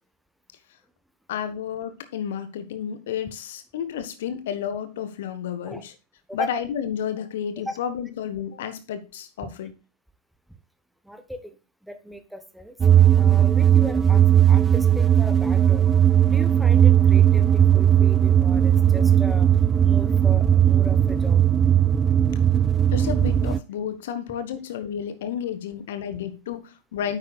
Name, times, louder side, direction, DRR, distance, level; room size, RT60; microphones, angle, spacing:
voice 1, 1.3-5.9 6.3-9.7 22.9-27.2, left 8 dB, 55° left, 11 dB, 1.4 m, -31 dB
voice 2, 11.0-11.6 11.8-12.7 13.2-15.9 16.3-19.5 19.8-21.4, equal, ahead, 9 dB, 1.1 m, -37 dB
sound 1, 12.8-23.6, right 10 dB, 20° right, 0.3 m, -17 dB
9.8 x 8.3 x 2.4 m, 0.30 s
figure-of-eight pair, 90°, 0 cm